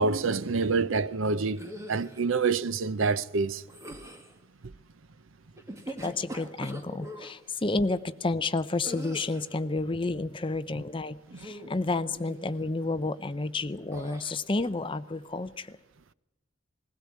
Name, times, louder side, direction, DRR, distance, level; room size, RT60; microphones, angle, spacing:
voice 1, 0.0-3.6 4.6-4.7 11.3-11.4, right 4 dB, 75° right, 0.7 m, -27 dB
sound 1, 1.6-2.2 3.7-4.3 5.6-7.3 8.8-9.6 11.3-11.8 12.1-12.5 13.9-14.4, equal, 15° right, 1.7 m, -42 dB
voice 2, 5.9-15.8, left 3 dB, 25° left, 0.6 m, -31 dB
20.5 x 16.5 x 8.5 m
head